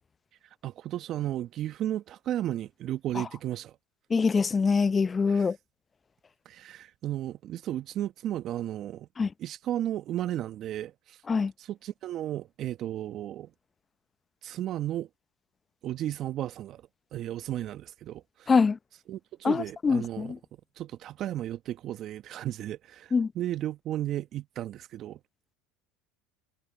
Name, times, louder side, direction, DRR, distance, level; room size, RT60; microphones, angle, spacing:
voice 1, 0.6-3.8 5.3-5.5 6.4-9.1 9.4-11.2 11.6-13.5 14.4-15.1 15.8-16.8 17.1-18.5 19.1-20.3 20.8-25.2, right 12 dB, 50° right, 1.3 m, -34 dB
voice 2, 4.1-5.6 9.2-9.3 11.3-11.5 18.5-18.8 19.4-20.4 23.1-23.3, left 5 dB, 25° left, 0.7 m, -24 dB
hypercardioid pair, 85°, 0 cm